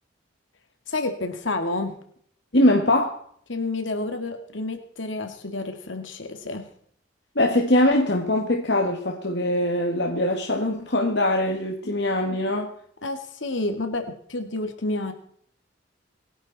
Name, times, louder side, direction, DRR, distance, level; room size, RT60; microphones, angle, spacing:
voice 1, 0.9-1.9 3.5-6.7 13.0-14.0 14.3-15.1, left 2 dB, 80° left, 6 dB, 2.2 m, -29 dB
voice 2, 2.5-3.2 7.4-12.7, left 1 dB, 60° left, 2 dB, 1.9 m, -22 dB
27.0 x 11.0 x 4.2 m, 0.63 s
head